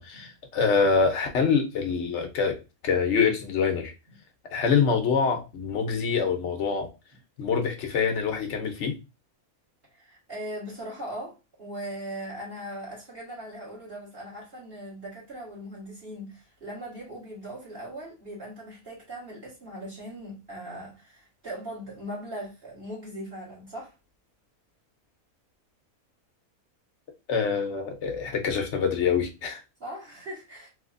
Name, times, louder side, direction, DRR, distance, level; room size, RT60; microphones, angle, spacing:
voice 1, 0.0-3.9 4.5-6.9 7.4-9.0 27.3-29.6, left 5 dB, 55° left, 1.0 m, -25 dB
voice 2, 9.9-23.9 29.8-30.7, right 1 dB, 45° right, 1.5 m, -39 dB
3.3 x 2.9 x 2.5 m
omnidirectional pair, 1.5 m